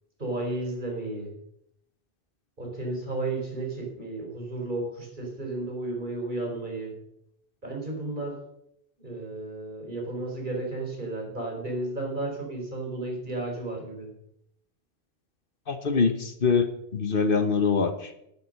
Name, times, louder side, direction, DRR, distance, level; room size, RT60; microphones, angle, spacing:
voice 1, 0.2-1.3 2.6-6.9 7.6-8.4 9.0-14.1, right 2 dB, 50° right, 0 dB, 4.4 m, -33 dB
voice 2, 15.7-16.7 16.9-18.1, left 5 dB, 60° left, 9 dB, 1.3 m, -24 dB
12.0 x 11.0 x 6.5 m, 0.77 s
omnidirectional pair, 1.1 m